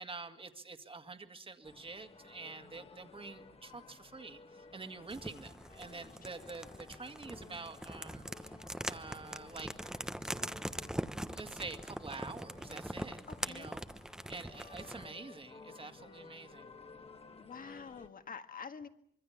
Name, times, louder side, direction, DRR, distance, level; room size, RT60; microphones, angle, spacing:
voice 1, 0.0-8.5 8.9-9.7 11.2-13.8 14.3-16.7, right 3 dB, 25° right, 8 dB, 2.0 m, -47 dB
sound 1, 1.6-18.1, left 4 dB, 30° left, 1.6 m, -56 dB
sound 2, 5.1-15.1, right 1 dB, 5° right, 1.0 m, -43 dB
voice 2, 5.8-6.2 13.3-13.8 17.4-18.9, left 6 dB, 45° left, 9 dB, 1.8 m, -48 dB
25.0 x 24.0 x 7.2 m, 0.69 s
wide cardioid pair, 130°, 20 cm